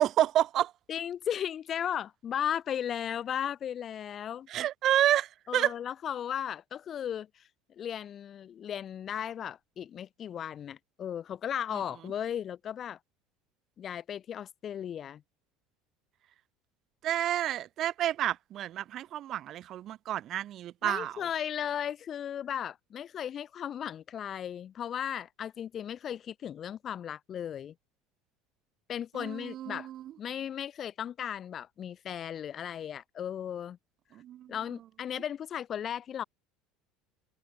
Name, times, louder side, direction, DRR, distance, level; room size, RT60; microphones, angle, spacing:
voice 1, 0.0-0.7 4.5-5.7 17.0-21.1 29.1-30.0 34.2-34.5, right 12 dB, 45° right, 1.7 m, -29 dB
voice 2, 0.9-4.5 5.5-7.5 7.8-13.0 13.8-15.2 20.8-27.7 28.9-29.9 30.2-33.8 34.5-36.2, left 9 dB, 40° left, 2.9 m, -36 dB
figure-of-eight pair, 65°, 0 cm